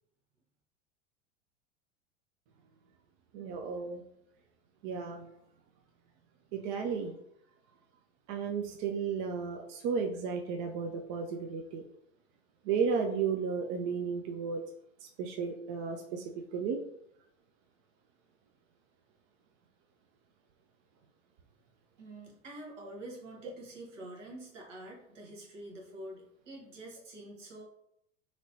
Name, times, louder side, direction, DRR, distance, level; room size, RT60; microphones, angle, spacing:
voice 1, 3.3-4.0 4.8-5.2 6.5-7.1 8.3-11.8 12.7-14.6 15.2-16.2 16.5-16.8, right 5 dB, 45° right, 3 dB, 0.4 m, -33 dB
voice 2, 22.0-27.6, right 1 dB, 75° right, -2 dB, 1.2 m, -47 dB
2.9 x 2.9 x 2.7 m, 0.75 s
figure-of-eight pair, 85°, 37 cm